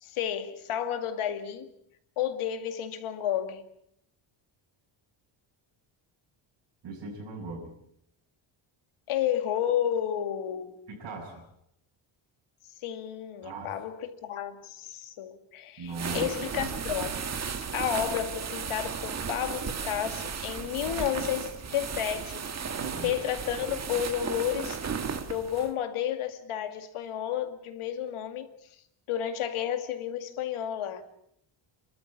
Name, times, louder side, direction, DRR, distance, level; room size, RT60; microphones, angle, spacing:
voice 1, 0.0-1.7 2.2-3.6 9.1-10.8 12.8-17.2 17.7-22.4 23.0-24.8 25.3-28.5 29.1-31.0, left 10 dB, 80° left, 2.4 m, -31 dB
voice 2, 6.8-7.7 10.9-11.4 13.4-13.7 15.8-16.3 16.6-16.8 22.8-23.1, right 3 dB, 55° right, 7.4 m, -39 dB
sound 1, 15.9-25.7, right 6 dB, 30° right, 1.6 m, -35 dB
29.0 x 13.5 x 8.6 m
cardioid pair, 165°, 50 cm